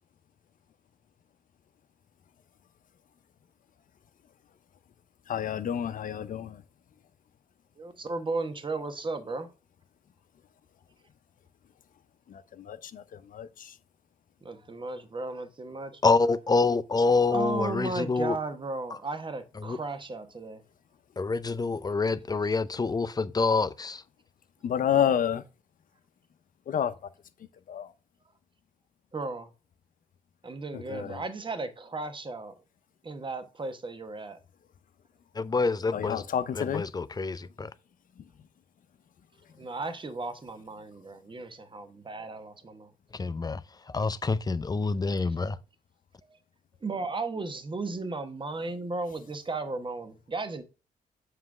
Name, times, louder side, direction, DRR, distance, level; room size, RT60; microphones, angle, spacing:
voice 1, 5.3-6.6 12.3-13.7 24.6-25.4 26.7-26.9 27.7-27.9 30.7-31.2 35.9-36.8, left 9 dB, 65° left, 0.7 m, -29 dB
voice 2, 7.8-9.5 14.4-16.0 17.3-20.6 29.1-29.5 30.4-32.5 33.0-34.4 39.6-42.9 46.3-46.4 46.8-50.6, right 3 dB, 35° right, 1.2 m, -35 dB
voice 3, 16.0-18.4 19.6-19.8 21.2-24.0 35.4-36.2 36.5-37.7 43.1-43.6 43.9-45.6, left 4 dB, 25° left, 0.5 m, -27 dB
7.4 x 3.3 x 6.1 m
cardioid pair, 70°, 15 cm